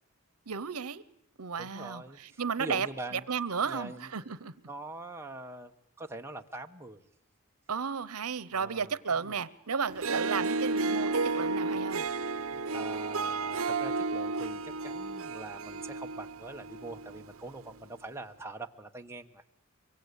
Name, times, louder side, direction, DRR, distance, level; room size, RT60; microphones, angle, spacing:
voice 1, 0.5-1.0 1.4-2.0 2.4-2.9 3.1-4.5 7.7-12.0, right 6 dB, 85° right, 0.9 m, -33 dB
voice 2, 1.6-3.3 3.6-4.1 4.7-7.0 8.5-9.4 12.5-19.4, right 2 dB, 10° right, 1.1 m, -44 dB
Harp, 9.9-17.3, right 3 dB, 65° right, 1.0 m, -32 dB
24.0 x 23.5 x 8.3 m
head